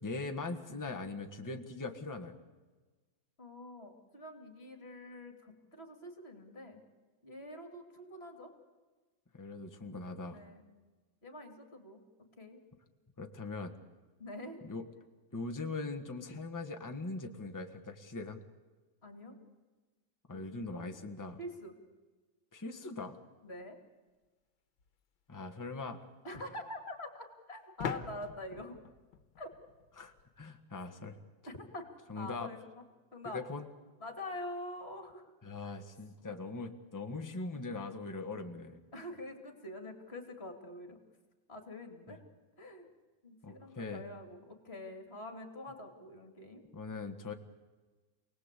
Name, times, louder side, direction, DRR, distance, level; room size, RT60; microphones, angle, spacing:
voice 1, 0.0-2.4 9.3-10.4 13.2-13.8 14.6-14.8 15.3-18.4 20.3-21.4 22.5-23.2 25.3-26.0 30.0-31.2 32.1-32.5 33.3-33.7 35.4-38.8 42.1-42.2 43.4-44.1 46.7-47.3, left 3 dB, 10° left, 5 dB, 1.4 m, -41 dB
voice 2, 3.4-6.8 7.2-8.5 10.3-10.6 11.2-12.6 14.2-14.6 19.0-19.4 20.3-20.9 21.4-21.7 23.4-23.8 26.2-28.8 29.4-29.5 31.5-31.9 32.1-32.8 33.1-33.4 34.0-35.3 38.9-41.0 41.5-42.2 42.6-42.9 43.2-46.6, left 1 dB, 30° left, 5 dB, 3.0 m, -45 dB
Weights dropped, 24.8-24.9 27.8-30.4, left 6 dB, 90° left, 2.0 m, -43 dB
28.0 x 19.5 x 8.4 m, 1.3 s
omnidirectional pair, 2.1 m